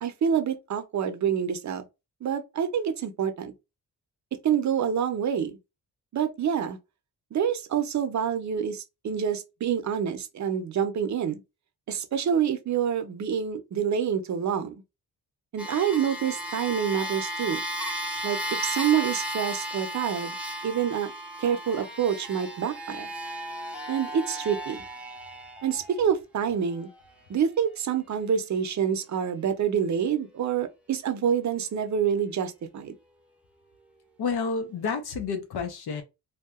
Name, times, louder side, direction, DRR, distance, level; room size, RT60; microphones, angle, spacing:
voice 1, 0.0-1.8 2.2-3.5 4.3-5.6 6.1-6.8 7.3-11.4 11.9-14.8 15.5-17.6 18.2-20.3 20.6-21.1 21.4-23.1 23.9-24.8 25.6-26.9 27.3-33.0, right 8 dB, 45° right, 0.6 m, -27 dB
sound 1, 15.6-26.0 26.8-26.9, equal, 5° right, 0.7 m, -35 dB
voice 2, 34.2-36.0, left 5 dB, 75° left, 0.8 m, -30 dB
2.7 x 2.2 x 2.3 m
cardioid pair, 85°, 39 cm